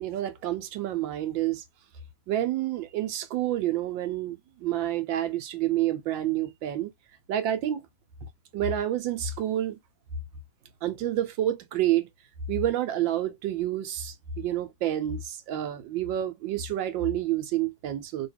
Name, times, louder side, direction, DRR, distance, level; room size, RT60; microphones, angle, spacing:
voice 1, 0.0-1.6 2.3-6.9 7.3-7.8 8.5-9.7 10.8-12.1 12.5-18.3, right 12 dB, 75° right, 1.3 m, -28 dB
2.9 x 2.8 x 3.2 m
omnidirectional pair, 2.3 m